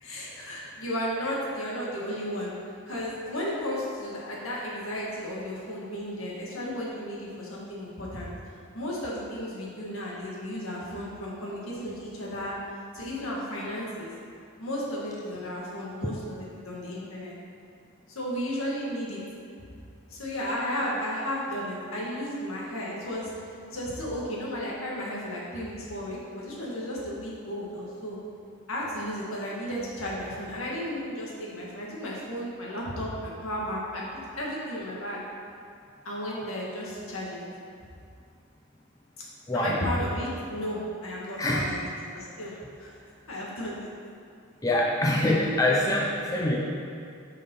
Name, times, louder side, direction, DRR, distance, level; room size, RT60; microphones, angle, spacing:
voice 1, 0.0-2.5 2.9-8.3 8.7-12.5 12.9-14.1 14.6-16.4 16.6-17.3 18.1-19.2 20.1-23.3 23.7-28.2 28.7-34.0 34.4-35.2 36.0-37.4 39.5-41.7 42.1-43.0 43.3-43.9, equal, 75° left, -4 dB, 1.8 m, -34 dB
voice 2, 41.4-41.8 44.6-46.6, left 1 dB, 15° left, -2 dB, 0.5 m, -24 dB
9.4 x 5.5 x 3.8 m, 2.3 s
head